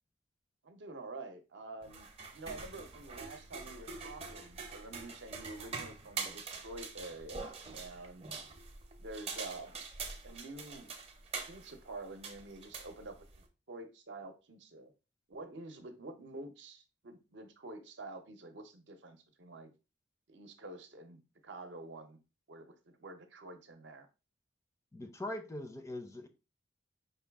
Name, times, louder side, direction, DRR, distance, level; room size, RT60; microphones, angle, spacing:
voice 1, 0.6-8.3 9.0-9.8 10.2-10.9 11.4-13.2 13.7-14.9 15.3-19.7 20.3-22.2 22.5-24.1, right 2 dB, 65° right, 0.7 m, -48 dB
sound 1, 1.8-13.5, right 4 dB, 30° right, 0.6 m, -45 dB
voice 2, 24.9-26.3, left 1 dB, 15° left, 0.4 m, -41 dB
5.2 x 2.3 x 3.4 m
head